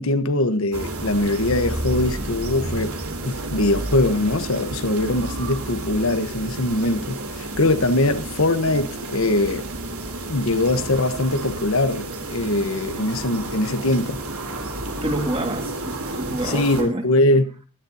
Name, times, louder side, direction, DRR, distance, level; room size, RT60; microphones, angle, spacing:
voice 1, 0.0-2.9 3.2-9.6 10.3-14.2 16.4-17.6, left 2 dB, 70° left, 1.2 m, -22 dB
sound 1, 0.7-16.8, right 2 dB, 80° right, 3.4 m, -31 dB
voice 2, 15.0-17.0, right 1 dB, 25° right, 2.1 m, -27 dB
22.0 x 11.0 x 2.8 m
head